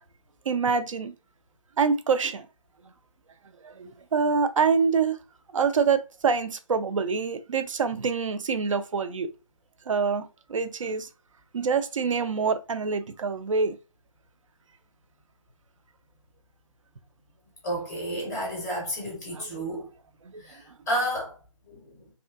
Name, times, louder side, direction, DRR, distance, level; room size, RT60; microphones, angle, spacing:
voice 1, 0.5-1.1 1.8-2.5 3.6-5.2 5.5-9.3 9.9-11.1 11.5-13.8 19.3-19.5 20.3-20.4, right 5 dB, 65° right, 0.4 m, -26 dB
voice 2, 17.6-19.9 20.4-21.3 21.7-22.1, equal, 10° left, 0.5 m, -31 dB
2.6 x 2.4 x 2.3 m
figure-of-eight pair, 150°, 18 cm